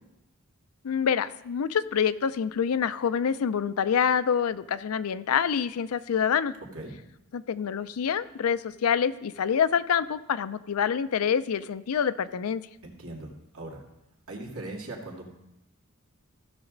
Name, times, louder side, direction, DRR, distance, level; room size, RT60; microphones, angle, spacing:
voice 1, 0.8-6.5 7.3-12.6, left 7 dB, 85° left, 14 dB, 0.4 m, -26 dB
voice 2, 12.8-13.8 14.3-15.3, right 2 dB, 80° right, -1 dB, 2.1 m, -39 dB
15.5 x 6.2 x 3.9 m, 0.90 s
head